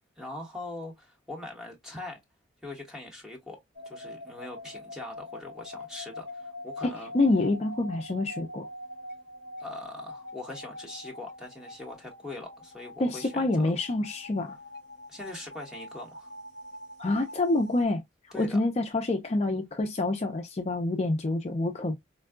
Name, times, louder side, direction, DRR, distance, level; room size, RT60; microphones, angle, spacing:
voice 1, 0.2-2.2 2.6-3.6 3.9-7.1 9.6-13.7 15.1-16.3 18.3-18.6, left 2 dB, 5° right, 1.0 m, -42 dB
sound 1, 3.7-17.8, left 1 dB, 70° right, 2.7 m, -44 dB
voice 2, 6.8-8.7 13.0-14.6 17.0-18.0 18.4-22.0, left 2 dB, 35° left, 0.4 m, -27 dB
4.4 x 2.2 x 2.4 m
head